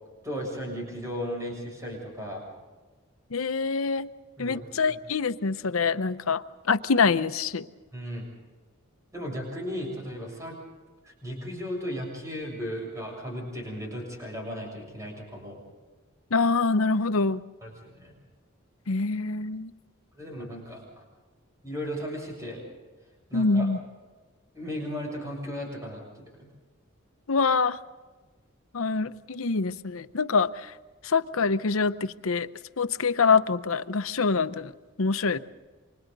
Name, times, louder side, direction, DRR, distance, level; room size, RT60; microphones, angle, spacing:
voice 1, 0.2-2.4 4.4-5.0 7.9-8.3 9.1-10.6 11.0-15.6 17.6-18.1 20.1-21.1 21.6-22.6 23.3-23.7 24.5-26.5, equal, 15° right, 0 dB, 7.2 m, -36 dB
voice 2, 3.3-4.1 4.4-7.7 16.3-17.4 18.9-19.7 23.3-23.8 27.3-27.8 28.7-30.7 31.0-32.5 32.8-34.7 35.0-35.4, left 4 dB, 85° left, 12 dB, 0.8 m, -25 dB
30.0 x 25.0 x 4.0 m, 1.3 s
head